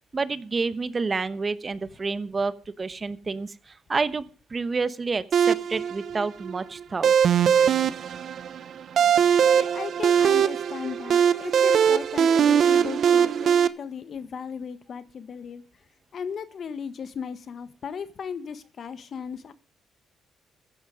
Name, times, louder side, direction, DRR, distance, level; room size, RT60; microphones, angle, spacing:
voice 1, 0.1-4.2 4.5-7.1, right 4 dB, 30° right, 15 dB, 0.9 m, -29 dB
sound 1, 5.3-13.7, right 8 dB, 60° right, 0.7 m, -21 dB
voice 2, 9.6-15.6 16.1-19.5, left 6 dB, 55° left, 13 dB, 1.4 m, -36 dB
14.5 x 9.8 x 5.2 m, 0.38 s
cardioid pair, 90°, 0 cm